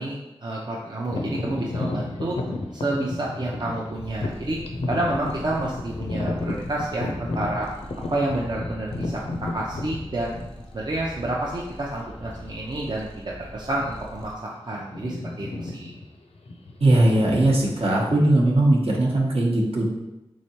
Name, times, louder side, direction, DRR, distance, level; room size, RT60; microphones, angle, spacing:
voice 1, 0.0-2.4 2.7-4.6 4.9-7.7 8.1-9.2 9.5-10.4 10.7-14.3 14.7-15.9, right 1 dB, 45° right, -4 dB, 0.5 m, -29 dB
sound 1, 1.1-10.9 11.5-11.6 12.3-12.5 12.8-13.0 13.7-14.2 14.5-17.9, left 2 dB, 75° left, 0.4 m, -32 dB
Purr, 3.9-14.3, equal, 10° left, 0.6 m, -42 dB
voice 2, 16.8-19.9, right 1 dB, 65° right, -3 dB, 0.9 m, -19 dB
3.6 x 3.2 x 2.8 m, 0.97 s
cardioid pair, 45°, 11 cm